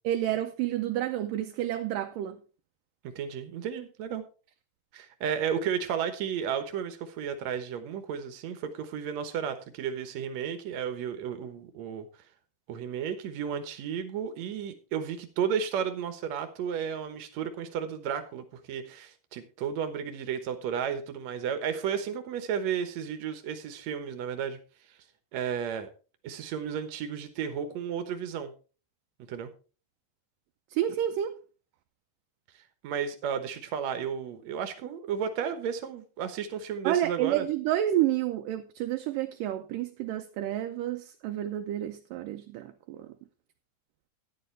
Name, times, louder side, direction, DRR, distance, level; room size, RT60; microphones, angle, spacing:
voice 1, 0.0-2.4 30.7-31.4 36.8-43.1, right 12 dB, 75° right, 2.1 m, -30 dB
voice 2, 3.2-4.2 4.9-12.1 12.7-24.6 25.3-25.9 26.2-28.5 29.3-29.5 32.8-37.5, right 8 dB, 60° right, 2.0 m, -33 dB
12.0 x 10.5 x 3.3 m
omnidirectional pair, 4.2 m